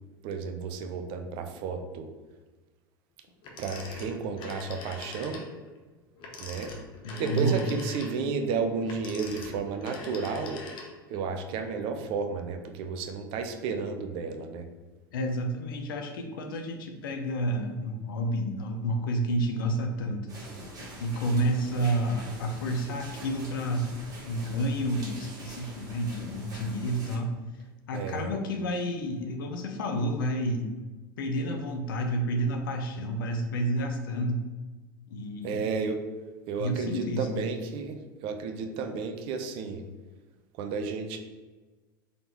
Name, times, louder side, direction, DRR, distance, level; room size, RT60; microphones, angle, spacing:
voice 1, 0.2-2.1 3.6-5.5 6.4-6.7 7.2-10.6 11.1-14.7 27.9-28.3 35.4-36.0 36.5-39.8 40.5-41.2, right 5 dB, 50° right, 6 dB, 0.6 m, -32 dB
Telephone, 3.4-5.5 6.2-11.2, left 3 dB, 45° left, 0.9 m, -43 dB
voice 2, 7.0-7.7 15.1-20.3 21.0-23.9 24.2-27.4 27.9-30.7 31.2-34.5 35.1-35.6 36.6-37.5, right 1 dB, 70° left, 4 dB, 0.7 m, -30 dB
sound 1, 20.3-27.2, right 1 dB, 30° right, 1.4 m, -44 dB
3.9 x 3.5 x 3.0 m, 1.3 s
hypercardioid pair, 80°, 12 cm